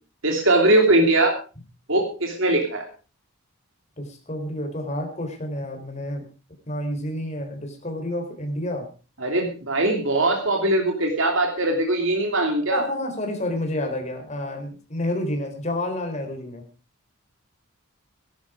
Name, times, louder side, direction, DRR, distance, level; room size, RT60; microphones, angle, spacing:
voice 1, 0.2-1.3 1.9-2.8 9.2-12.8, right 2 dB, 65° right, 2 dB, 3.0 m, -21 dB
voice 2, 4.0-6.3 6.7-8.9 12.7-16.6, left 1 dB, 30° left, 4 dB, 3.9 m, -29 dB
16.5 x 12.0 x 4.9 m, 0.35 s
head